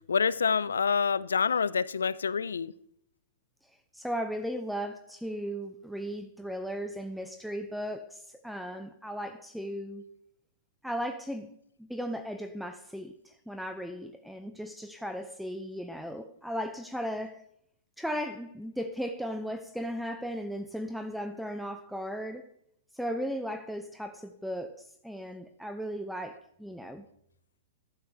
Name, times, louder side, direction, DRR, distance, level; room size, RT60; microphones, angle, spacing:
voice 1, 0.0-2.7, left 6 dB, 90° left, 0.3 m, -27 dB
voice 2, 3.9-10.0 10.8-11.5 11.8-17.4 18.0-22.4 22.9-27.1, equal, ahead, 0.5 m, -36 dB
11.5 x 7.9 x 3.5 m
hypercardioid pair, 115°, 0 cm